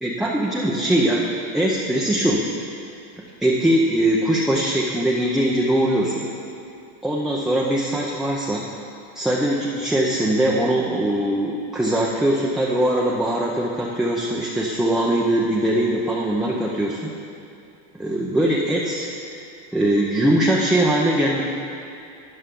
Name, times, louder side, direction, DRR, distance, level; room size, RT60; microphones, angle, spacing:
voice 1, 0.0-1.3 1.5-2.5 3.4-6.3 7.0-8.6 9.1-17.0 18.0-19.1 19.7-21.4, right 1 dB, ahead, -4 dB, 0.6 m, -21 dB
12.5 x 9.4 x 3.7 m, 2.6 s
supercardioid pair, 145°, 31 cm